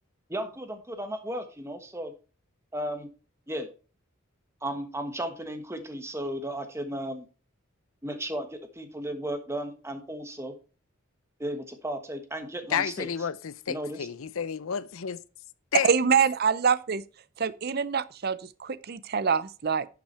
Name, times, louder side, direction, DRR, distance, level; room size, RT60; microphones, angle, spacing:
voice 1, 0.3-2.1 2.7-3.1 3.5-3.7 4.6-7.3 8.0-10.5 11.4-13.1 13.7-14.0, right 1 dB, 15° right, 1.3 m, -34 dB
voice 2, 12.7-15.2 15.7-15.9, left 7 dB, 80° left, 0.6 m, -30 dB
voice 3, 15.8-17.0 17.4-19.9, right 6 dB, 45° right, 0.5 m, -25 dB
11.0 x 6.0 x 4.2 m
head